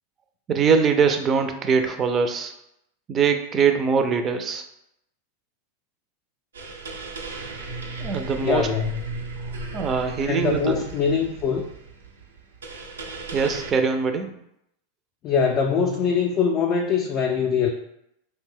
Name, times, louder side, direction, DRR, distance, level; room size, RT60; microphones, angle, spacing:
voice 1, 0.5-2.5 3.1-4.6 8.0-8.7 9.7-10.8 13.3-14.3, right 5 dB, 30° right, 6 dB, 0.4 m, -22 dB
sound 1, 6.5-13.7, right 3 dB, 90° right, 0.5 m, -36 dB
voice 2, 8.4-9.0 10.2-11.6 15.2-17.7, left 6 dB, 40° left, 2 dB, 0.3 m, -23 dB
2.5 x 2.1 x 3.6 m, 0.78 s
hypercardioid pair, 105°, 0 cm